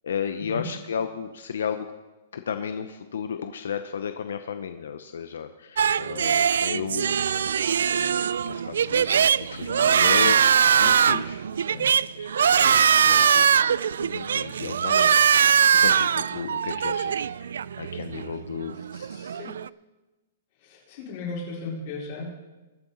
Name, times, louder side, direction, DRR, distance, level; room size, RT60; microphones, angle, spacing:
voice 1, 0.0-1.9 2.3-7.3 8.0-11.4 12.2-13.7 14.0-15.2 15.7-17.5 17.8-18.8, left 7 dB, 85° left, 8 dB, 0.8 m, -34 dB
sound 1, 5.8-19.7, right 8 dB, 85° right, 0.3 m, -22 dB
voice 2, 11.5-11.9 18.7-19.5 20.6-22.5, left 3 dB, 40° left, -4 dB, 4.5 m, -37 dB
22.0 x 8.7 x 4.1 m, 1.1 s
hypercardioid pair, 175°, 0 cm